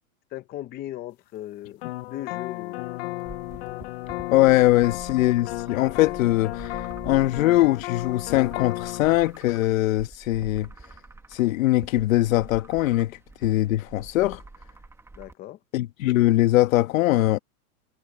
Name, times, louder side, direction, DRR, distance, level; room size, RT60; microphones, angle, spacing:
voice 1, 0.3-2.8 15.2-15.6, left 14 dB, 20° left, 0.9 m, -37 dB
sound 1, 1.8-9.2, left 19 dB, 45° left, 0.5 m, -34 dB
sound 2, 3.3-15.3, right 3 dB, 5° right, 1.7 m, -46 dB
voice 2, 4.3-10.7 11.3-14.4 15.7-17.4, left 16 dB, 60° left, 1.3 m, -21 dB
supercardioid pair, 155°, 44 cm